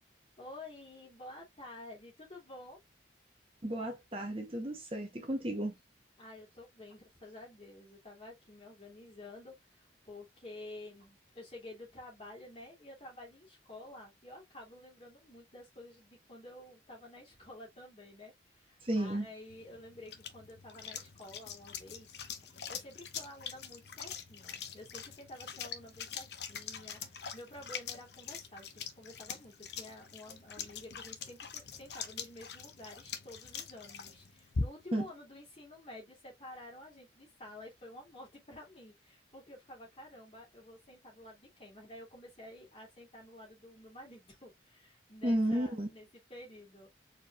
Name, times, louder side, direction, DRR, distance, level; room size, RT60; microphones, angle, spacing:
voice 1, 0.4-2.8 6.2-46.9, left 1 dB, 30° left, 2.8 m, -51 dB
voice 2, 3.6-5.7 18.8-19.3 34.9-35.1 45.2-45.9, right 1 dB, 30° right, 0.9 m, -33 dB
sound 1, 19.5-35.0, left 6 dB, 60° left, 0.7 m, -43 dB
4.6 x 4.5 x 2.4 m
head